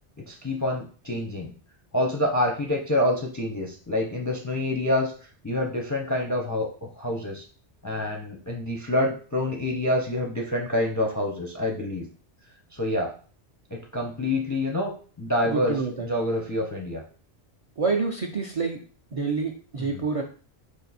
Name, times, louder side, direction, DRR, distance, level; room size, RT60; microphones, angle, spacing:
voice 1, 0.2-1.5 1.9-5.1 5.4-7.4 7.8-12.1 12.7-13.1 13.7-14.9 15.2-17.0 19.9-20.0, left 1 dB, 25° left, 0 dB, 0.4 m, -27 dB
voice 2, 15.4-16.1 17.8-18.8 19.1-20.2, right 4 dB, 50° right, 2 dB, 0.4 m, -27 dB
4.9 x 2.6 x 4.0 m, 0.41 s
omnidirectional pair, 1.2 m